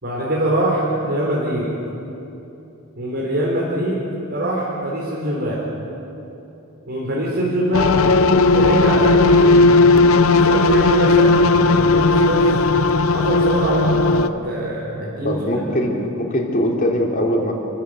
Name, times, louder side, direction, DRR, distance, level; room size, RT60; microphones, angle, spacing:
voice 1, 0.0-1.7 3.0-5.6 6.9-8.0 8.5-9.7 10.3-12.5 13.1-15.4, right 1 dB, 50° right, -5 dB, 4.1 m, -23 dB
sound 1, 7.7-14.3, left 3 dB, 75° left, 0.7 m, -15 dB
voice 2, 15.2-17.5, equal, 40° left, -1 dB, 3.5 m, -21 dB
28.5 x 15.0 x 7.8 m, 2.9 s
head